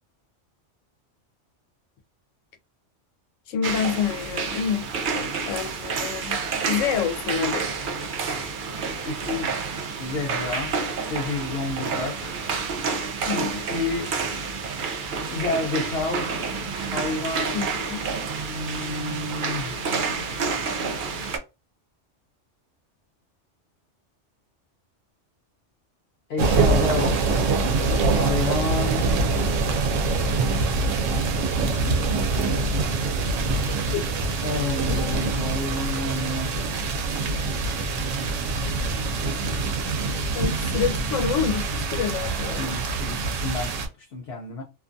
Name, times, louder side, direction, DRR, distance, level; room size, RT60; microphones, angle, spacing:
voice 1, 3.5-4.9 5.5-6.4 6.7-7.7 13.3-13.6 17.5-18.0 33.9-34.0 40.3-42.7, left 7 dB, 90° left, 0.9 m, -27 dB
sound 1, 3.6-21.4, right 5 dB, 60° right, 0.5 m, -29 dB
voice 2, 9.0-9.6 10.0-12.3 13.3-14.2 15.3-17.6 18.5-19.8 26.3-27.6 28.2-29.1 34.4-36.6 42.6-44.6, left 3 dB, 65° left, 0.7 m, -30 dB
sound 2, 26.4-43.9, right 3 dB, 85° right, 0.9 m, -24 dB
2.5 x 2.3 x 2.5 m
omnidirectional pair, 1.3 m